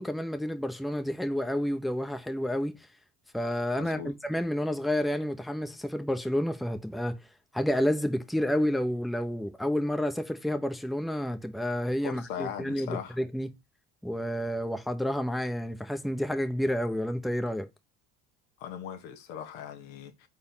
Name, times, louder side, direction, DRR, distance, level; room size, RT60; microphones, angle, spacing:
voice 1, 0.0-2.8 3.3-7.2 7.5-13.5 14.0-17.7, equal, ahead, 0.9 m, -30 dB
voice 2, 3.8-4.1 12.0-13.2 18.6-20.3, left 9 dB, 80° left, 1.4 m, -39 dB
4.5 x 4.3 x 5.6 m
supercardioid pair, 80°, 40 cm